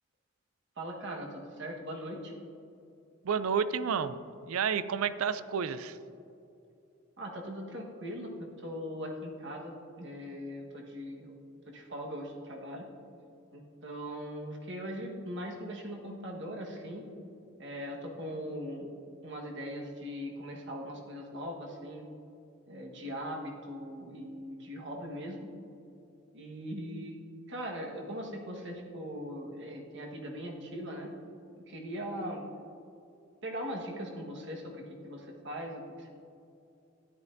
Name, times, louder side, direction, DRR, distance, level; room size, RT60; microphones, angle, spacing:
voice 1, 0.8-2.3 7.2-8.3 8.6-11.3 11.7-12.9 13.5-17.0 17.6-18.9 19.2-22.1 22.7-25.5 26.3-27.2 27.5-31.1 31.7-32.4 33.4-36.1, equal, 55° right, 0 dB, 1.4 m, -40 dB
voice 2, 3.2-4.2 4.5-6.0, right 6 dB, 85° right, 14 dB, 0.4 m, -30 dB
13.0 x 10.5 x 2.6 m, 2.7 s
head